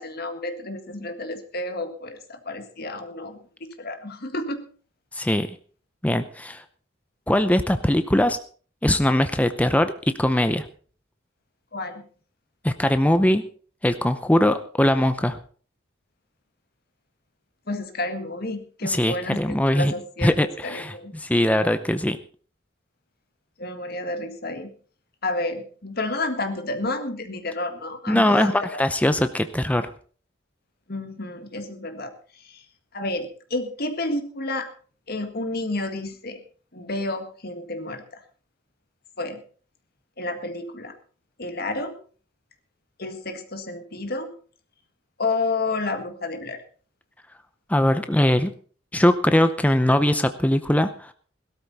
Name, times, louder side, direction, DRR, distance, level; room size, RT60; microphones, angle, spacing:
voice 1, 0.0-4.6 11.7-12.0 17.7-19.4 19.7-21.1 23.6-24.7 25.2-28.8 30.9-32.6 32.9-34.7 35.1-36.4 36.7-38.2 39.2-39.4 40.2-40.9 41.4-41.9 43.0-44.3 45.2-46.6, left 2 dB, 50° left, 7 dB, 1.8 m, -30 dB
voice 2, 5.1-5.5 6.0-6.6 7.3-8.4 8.8-10.7 12.6-13.4 13.8-15.4 18.8-19.9 20.2-22.2 28.1-29.9 47.7-48.5 48.9-51.1, left 1 dB, 5° left, 10 dB, 0.6 m, -21 dB
17.0 x 12.5 x 4.1 m, 0.42 s
head